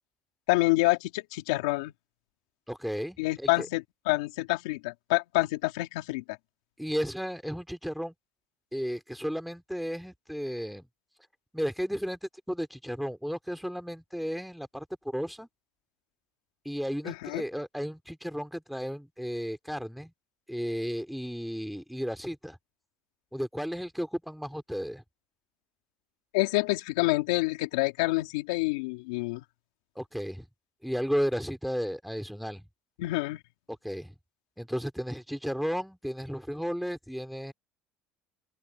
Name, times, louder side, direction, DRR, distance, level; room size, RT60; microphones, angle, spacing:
voice 1, 0.5-1.9 3.2-6.2 17.0-17.4 26.3-29.4 33.0-33.4, left 22 dB, 90° left, 3.2 m, -27 dB
voice 2, 2.7-3.7 6.8-8.1 8.7-10.9 11.5-12.2 12.5-15.5 16.6-20.1 20.5-22.6 23.3-25.0 29.9-30.5 30.8-32.6 33.8-34.2 34.6-37.5, equal, ahead, 2.9 m, -33 dB
open air
supercardioid pair, 110°, 3 cm